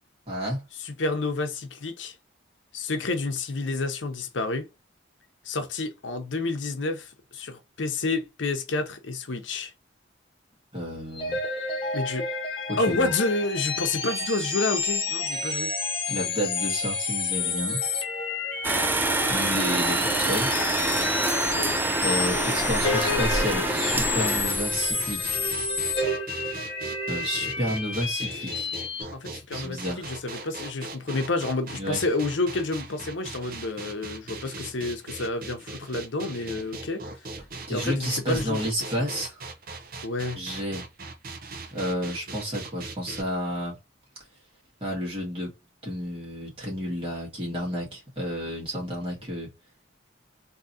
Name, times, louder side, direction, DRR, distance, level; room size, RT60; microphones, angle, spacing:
voice 1, 0.3-0.6 10.7-11.4 12.7-13.1 16.1-17.8 19.3-20.5 22.0-25.3 27.1-28.7 29.5-30.0 31.8-32.0 37.7-39.4 40.4-40.8 41.7-43.8 44.8-45.5 45.8-49.5, equal, 30° right, 1.9 m, -31 dB
voice 2, 0.8-2.1 2.7-4.7 5.4-9.7 11.9-12.3 12.8-15.7 22.0-22.1 26.8-27.0 29.1-37.0 37.7-38.7 40.0-40.4, left 3 dB, 85° left, 0.8 m, -29 dB
sound 1, 11.1-29.0, left 4 dB, 30° left, 1.1 m, -29 dB
sound 2, 18.6-26.0, right 2 dB, 10° right, 0.3 m, -26 dB
sound 3, 23.2-43.2, right 3 dB, 50° right, 0.7 m, -40 dB
3.7 x 2.8 x 2.7 m
head